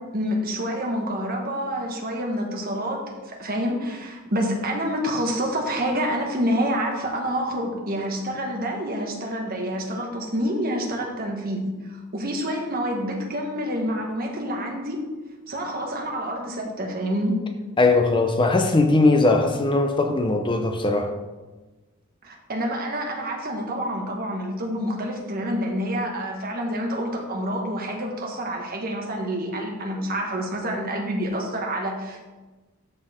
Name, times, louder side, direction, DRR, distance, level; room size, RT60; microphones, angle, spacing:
voice 1, 0.0-15.0 15.5-17.4 22.2-32.3, equal, 45° right, 1 dB, 1.5 m, -28 dB
voice 2, 17.8-21.1, left 2 dB, 20° left, 5 dB, 0.5 m, -19 dB
13.5 x 4.5 x 3.6 m, 1.2 s
head